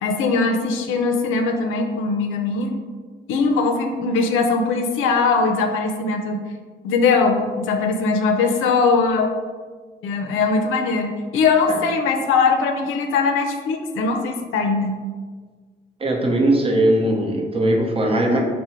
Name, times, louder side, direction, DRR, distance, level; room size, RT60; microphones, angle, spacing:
voice 1, 0.0-2.7 3.3-6.4 6.8-9.4 10.0-15.0, left 4 dB, 90° left, 4 dB, 0.4 m, -20 dB
voice 2, 16.0-18.4, right 1 dB, 30° right, 0 dB, 0.7 m, -19 dB
3.6 x 2.1 x 4.3 m, 1.5 s
cardioid pair, 90°, 20 cm